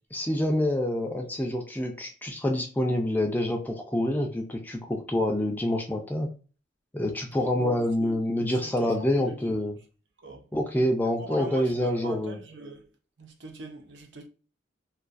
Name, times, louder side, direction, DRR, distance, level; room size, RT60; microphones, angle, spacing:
voice 1, 0.1-6.3 6.9-9.7 10.5-12.4, left 1 dB, 10° left, 0.3 m, -27 dB
voice 2, 7.4-8.2 8.6-9.7 10.2-10.5 11.2-12.9 13.2-14.3, right 2 dB, 70° right, 0.6 m, -42 dB
2.3 x 2.3 x 2.5 m
head